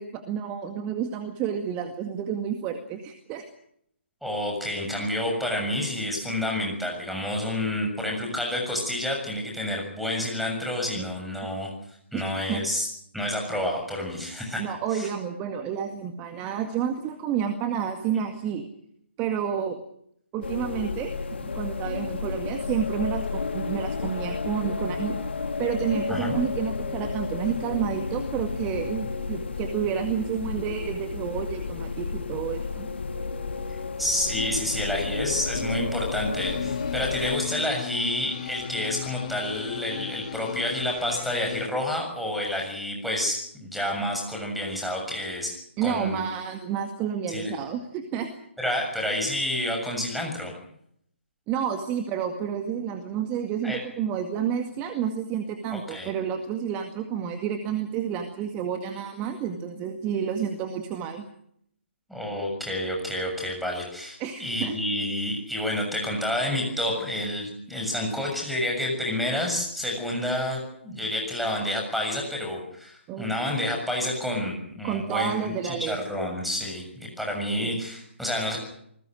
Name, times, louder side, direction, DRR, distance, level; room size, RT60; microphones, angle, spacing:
voice 1, 0.0-3.4 11.0-11.1 12.1-12.2 12.5-12.6 14.6-18.7 19.2-19.8 20.3-21.1 21.4-25.2 25.6-32.9 45.8-48.3 51.5-61.3 64.2-64.7 73.1-73.3 74.8-76.0 77.6-77.8, right 8 dB, 20° right, 7 dB, 2.0 m, -30 dB
voice 2, 4.2-11.7 12.1-12.9 13.1-15.1 26.1-26.4 33.7-45.5 45.8-46.2 47.3-47.5 48.6-50.5 53.6-53.8 55.7-56.1 62.1-78.6, left 1 dB, ahead, 1 dB, 7.0 m, -29 dB
sound 1, 20.4-37.4, left 4 dB, 60° left, 2.4 m, -32 dB
sound 2, 36.4-41.7, left 10 dB, 35° left, 2.2 m, -36 dB
28.5 x 20.5 x 6.4 m, 0.71 s
figure-of-eight pair, 140°, 7 cm